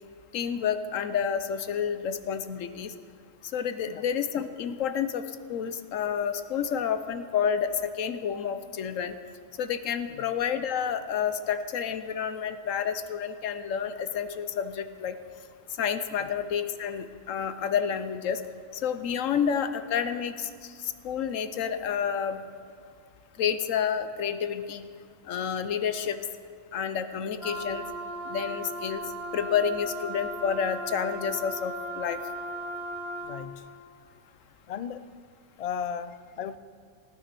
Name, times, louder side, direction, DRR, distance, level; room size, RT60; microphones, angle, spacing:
voice 1, 0.3-2.9 3.5-5.2 5.5-9.1 9.6-15.2 15.8-18.4 18.8-20.5 20.8-22.4 23.4-24.8 25.3-26.2 26.7-27.8 28.3-29.0 29.3-32.2, left 7 dB, 80° left, 11 dB, 1.2 m, -29 dB
Wind instrument woodwind instrument, 27.4-33.4, right 1 dB, ahead, 3.2 m, -37 dB
voice 2, 33.2-33.8 34.7-35.1 35.6-36.6, left 7 dB, 60° left, 13 dB, 0.4 m, -36 dB
17.0 x 9.6 x 6.8 m, 2.1 s
omnidirectional pair, 1.3 m